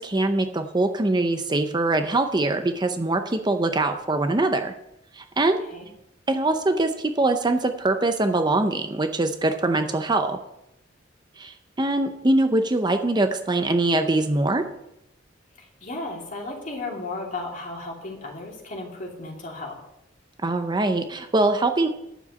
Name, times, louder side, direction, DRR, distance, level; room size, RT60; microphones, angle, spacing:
voice 1, 0.0-4.7 5.1-5.6 6.3-10.4 11.4-14.6 20.4-21.9, right 2 dB, 25° right, 7 dB, 0.7 m, -23 dB
voice 2, 15.6-19.8, left 2 dB, 45° left, 0 dB, 2.8 m, -34 dB
10.0 x 7.2 x 6.5 m, 0.82 s
head